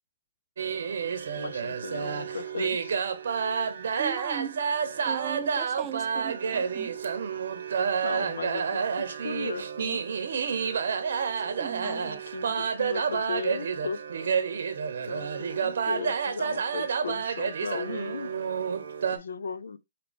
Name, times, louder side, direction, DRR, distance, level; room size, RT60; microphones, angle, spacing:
sound 1, 0.6-19.2, right 6 dB, 65° right, 0.7 m, -29 dB
voice 1, 1.4-3.0 8.0-10.0 11.8-14.0 15.1-18.3 19.1-19.8, left 5 dB, 70° left, 0.5 m, -37 dB
voice 2, 4.0-4.6 5.0-7.0 11.4-12.6, right 9 dB, 25° right, 0.4 m, -38 dB
5.2 x 2.8 x 3.4 m
hypercardioid pair, 140°, 0 cm